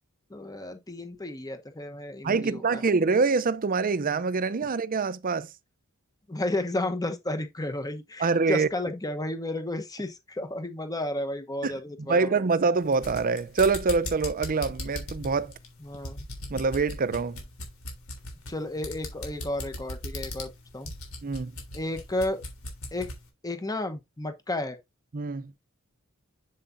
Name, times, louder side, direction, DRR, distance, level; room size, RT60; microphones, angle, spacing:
voice 1, 0.3-2.8 6.3-12.3 15.8-16.3 18.5-20.9 21.7-22.4 22.9-23.1 23.4-24.8, left 1 dB, 20° left, 1.0 m, -32 dB
voice 2, 2.2-5.5 8.2-8.7 11.6-11.7 12.0-15.5 16.5-17.4 21.2-21.5 25.1-25.5, right 4 dB, 40° right, 0.5 m, -25 dB
sound 1, 12.8-23.2, left 2 dB, 80° left, 3.3 m, -38 dB
7.4 x 7.2 x 2.6 m
head